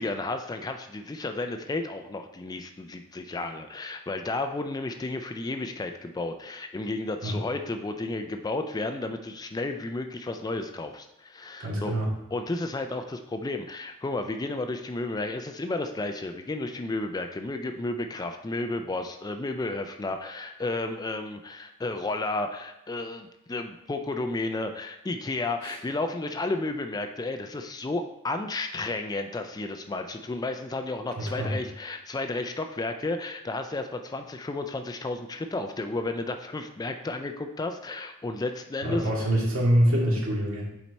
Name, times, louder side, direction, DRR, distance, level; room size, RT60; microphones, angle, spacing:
voice 1, 0.0-12.0 12.3-39.1, left 2 dB, 15° left, 6 dB, 0.3 m, -32 dB
voice 2, 11.6-12.1 25.6-25.8 31.4-31.5 38.8-40.6, equal, 65° right, -4 dB, 2.1 m, -25 dB
7.3 x 4.5 x 4.1 m, 0.88 s
head